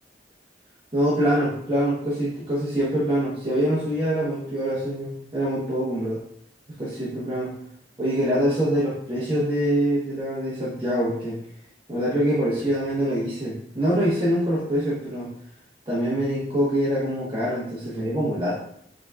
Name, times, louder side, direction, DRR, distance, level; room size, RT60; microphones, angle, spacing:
voice 1, 0.9-6.2 6.8-7.5 8.0-11.4 11.9-15.3 15.9-18.6, equal, 30° right, -8 dB, 1.1 m, -24 dB
5.2 x 3.8 x 2.3 m, 0.69 s
head